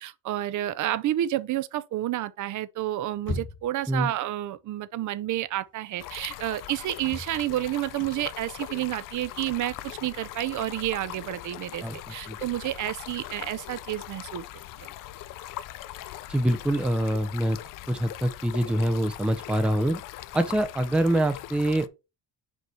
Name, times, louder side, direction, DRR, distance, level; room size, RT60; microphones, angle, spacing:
voice 1, 0.0-14.4 14.8-14.9, right 14 dB, 50° right, 0.5 m, -30 dB
sound 1, 3.1-3.9 5.7-5.8 6.2-6.3 7.0-10.6, left 2 dB, 30° left, 1.0 m, -39 dB
Stream, 6.0-21.9, left 14 dB, 60° left, 0.5 m, -41 dB
voice 2, 11.8-12.4 16.3-17.6 17.9-20.0 20.3-21.9, right 1 dB, 5° right, 0.4 m, -25 dB
5.3 x 4.7 x 4.3 m
cardioid pair, 150°, 38 cm